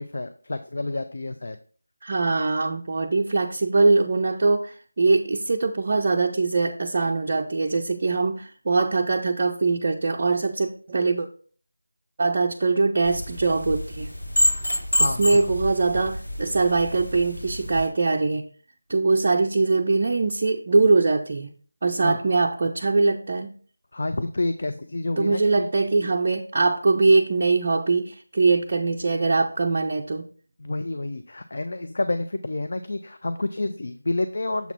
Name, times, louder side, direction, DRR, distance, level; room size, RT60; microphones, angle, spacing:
voice 1, 0.0-1.6 14.9-15.2 22.0-22.2 23.9-25.7 30.6-34.7, left 2 dB, 50° left, 9 dB, 0.4 m, -29 dB
voice 2, 2.0-11.3 12.2-14.1 15.0-18.4 18.9-21.5 21.8-23.5 25.2-30.3, right 3 dB, 35° right, 2 dB, 0.4 m, -22 dB
sound 1, 13.0-17.9, equal, 75° left, 2.9 m, -27 dB
7.0 x 3.9 x 4.4 m, 0.43 s
figure-of-eight pair, 165°, 0 cm